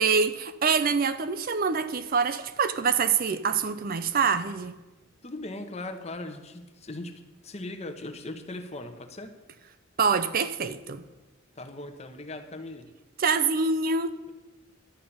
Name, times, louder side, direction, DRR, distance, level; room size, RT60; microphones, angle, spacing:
voice 1, 0.0-4.7 10.0-11.0 13.2-14.1, right 5 dB, 45° right, 12 dB, 0.5 m, -25 dB
voice 2, 5.2-9.4 11.5-12.9, left 2 dB, 30° left, 6 dB, 1.0 m, -39 dB
11.5 x 5.4 x 8.6 m, 1.1 s
head